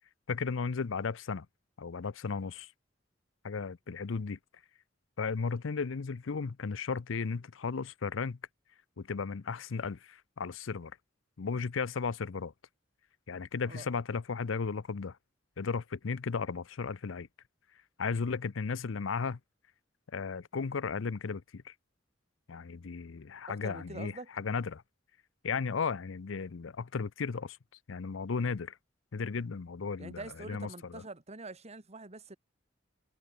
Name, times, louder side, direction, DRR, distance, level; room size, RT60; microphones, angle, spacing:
voice 1, 0.3-1.5 1.8-2.7 3.4-4.4 5.2-8.4 9.0-10.9 11.4-12.5 13.3-15.2 15.6-17.3 18.0-19.4 20.1-21.7 22.5-24.8 25.4-27.6 27.9-28.8 29.1-31.0, left 5 dB, 85° left, 0.6 m, -35 dB
voice 2, 23.5-24.3 28.4-28.5 30.0-32.4, right 2 dB, 35° right, 1.9 m, -45 dB
head